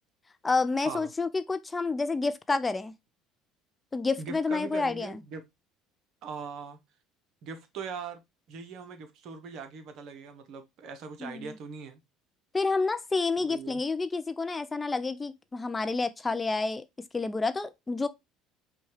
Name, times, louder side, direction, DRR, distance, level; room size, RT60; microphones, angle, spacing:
voice 1, 0.4-2.9 3.9-5.2 11.2-11.5 12.5-16.8 17.1-18.1, left 3 dB, 20° left, 0.4 m, -29 dB
voice 2, 4.2-5.4 6.2-6.8 7.4-8.2 8.5-12.0 13.4-13.8, right 5 dB, 60° right, 0.8 m, -41 dB
5.3 x 2.3 x 3.1 m
hypercardioid pair, 65°, 0 cm